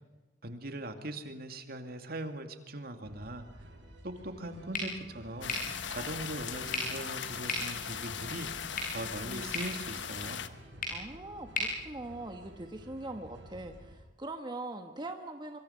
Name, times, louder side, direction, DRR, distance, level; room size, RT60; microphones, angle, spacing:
voice 1, 0.4-3.4 4.0-5.5 5.9-8.5 8.9-10.4, right 1 dB, 55° right, 7 dB, 2.3 m, -40 dB
sound 1, 3.0-14.0, equal, 90° right, 6.6 m, -52 dB
sound 2, 4.7-12.8, left 2 dB, 50° left, 6.7 m, -40 dB
sound 3, 5.4-10.5, left 7 dB, 80° left, 1.2 m, -39 dB
voice 2, 9.2-9.6 10.9-15.6, right 2 dB, 25° right, 5 dB, 1.3 m, -42 dB
25.0 x 24.5 x 5.7 m, 1.2 s
head